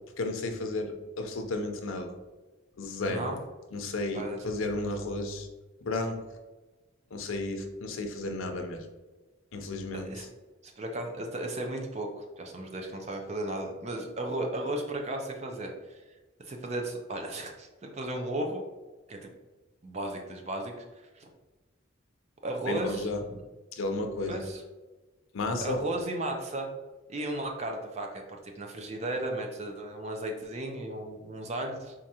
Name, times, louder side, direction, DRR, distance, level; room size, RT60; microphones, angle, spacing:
voice 1, 0.2-2.1 2.8-3.3 3.7-5.5 5.8-6.2 7.1-8.9 9.5-10.3 22.7-23.2 23.7-24.4 25.3-25.8, left 2 dB, 90° left, 5 dB, 0.6 m, -33 dB
voice 2, 9.9-10.3 10.6-16.0 16.5-18.6 19.1-19.3 19.8-20.7 21.1-21.3 22.4-23.4 24.3-24.6 25.6-26.7 27.1-31.9, right 1 dB, 35° right, 3 dB, 0.4 m, -35 dB
4.6 x 2.5 x 2.8 m, 1.2 s
head